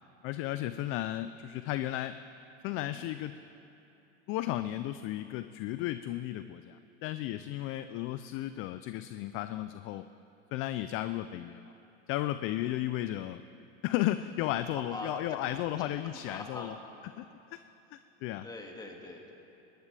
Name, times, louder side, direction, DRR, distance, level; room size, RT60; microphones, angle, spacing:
voice 1, 0.2-2.2 2.6-3.4 4.3-10.0 10.5-11.7 12.1-13.4 13.8-16.8 17.2-17.6 17.9-18.5, left 14 dB, 35° left, 12 dB, 0.4 m, -34 dB
voice 2, 16.3-16.8 18.4-19.3, left 2 dB, 10° left, 1 dB, 2.0 m, -43 dB
20.5 x 18.0 x 3.4 m, 3.0 s
supercardioid pair, 125°, 37 cm